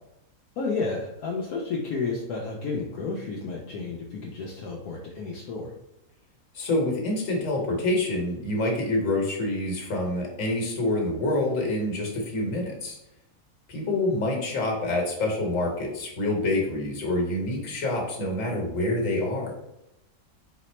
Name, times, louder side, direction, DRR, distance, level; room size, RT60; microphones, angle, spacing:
voice 1, 0.6-5.7, left 4 dB, 80° left, -2 dB, 1.1 m, -31 dB
voice 2, 6.5-13.0 13.7-19.5, left 2 dB, 60° left, 0 dB, 1.4 m, -27 dB
4.2 x 2.0 x 4.2 m, 0.87 s
omnidirectional pair, 1.6 m